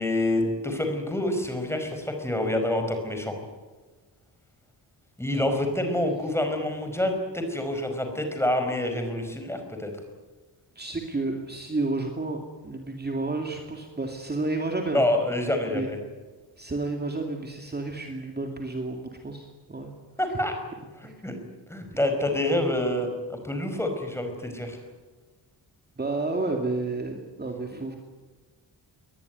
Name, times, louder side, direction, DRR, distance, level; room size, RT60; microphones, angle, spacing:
voice 1, 0.0-3.3 5.2-9.9 14.9-16.0 20.2-20.5 21.0-21.4 21.7-24.8, left 1 dB, 5° left, 5 dB, 4.9 m, -27 dB
voice 2, 10.8-15.1 15.7-15.9 16.6-19.9 21.0-21.1 26.0-28.0, right 2 dB, 20° right, 3 dB, 2.4 m, -31 dB
22.0 x 20.0 x 9.5 m, 1.3 s
wide cardioid pair, 155°, 43 cm